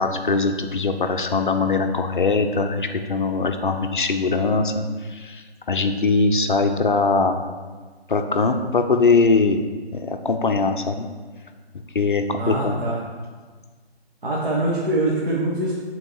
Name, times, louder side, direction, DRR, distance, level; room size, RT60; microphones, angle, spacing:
voice 1, 0.0-7.4 8.1-9.6 9.9-11.1 11.9-12.8, left 4 dB, 50° left, 6 dB, 0.5 m, -21 dB
voice 2, 12.4-13.0 14.2-15.8, right 1 dB, 55° right, -6 dB, 1.3 m, -23 dB
7.6 x 3.9 x 4.6 m, 1.4 s
figure-of-eight pair, 145°, 32 cm